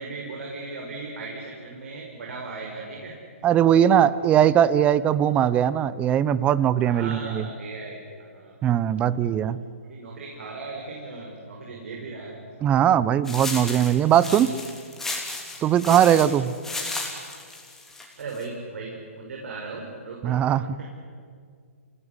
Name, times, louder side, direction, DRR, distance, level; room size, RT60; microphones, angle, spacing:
voice 1, 0.0-3.2 3.6-3.9 6.8-9.5 9.8-12.8 15.8-16.0 18.0-20.9, right 3 dB, 70° right, -1 dB, 5.7 m, -38 dB
voice 2, 3.4-7.5 8.6-9.6 12.6-14.5 15.6-16.5 20.2-20.6, right 10 dB, 15° right, 17 dB, 0.7 m, -20 dB
sound 1, 13.2-18.4, left 3 dB, 5° left, 3.2 m, -34 dB
28.0 x 18.0 x 9.8 m, 2.1 s
hypercardioid pair, 150°, 8 cm